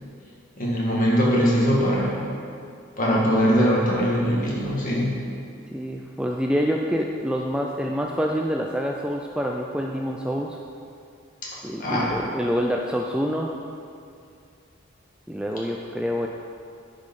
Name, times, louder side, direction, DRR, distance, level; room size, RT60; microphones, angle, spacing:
voice 1, 0.6-2.2 3.0-5.1 11.4-11.5 11.8-12.2, equal, 40° left, -4 dB, 1.9 m, -21 dB
voice 2, 5.7-10.6 11.6-13.5 15.3-16.3, equal, 5° right, 0 dB, 0.3 m, -26 dB
10.5 x 5.1 x 5.4 m, 2.4 s
head